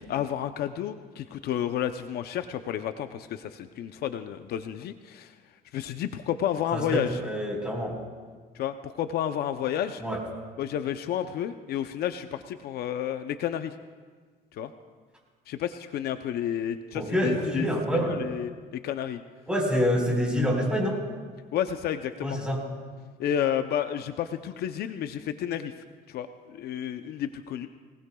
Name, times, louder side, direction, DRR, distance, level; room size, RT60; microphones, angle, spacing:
voice 1, 0.0-5.3 5.7-7.2 8.5-10.0 10.6-13.7 14.5-14.7 15.5-19.2 21.5-22.4 23.2-25.7 26.1-27.7, left 10 dB, 70° left, 9 dB, 0.7 m, -31 dB
voice 2, 6.7-8.0 10.0-10.2 16.9-18.2 19.5-21.0 22.2-22.6, equal, 5° right, -1 dB, 4.5 m, -26 dB
24.5 x 18.5 x 2.3 m, 1.5 s
cardioid pair, 110°, 17 cm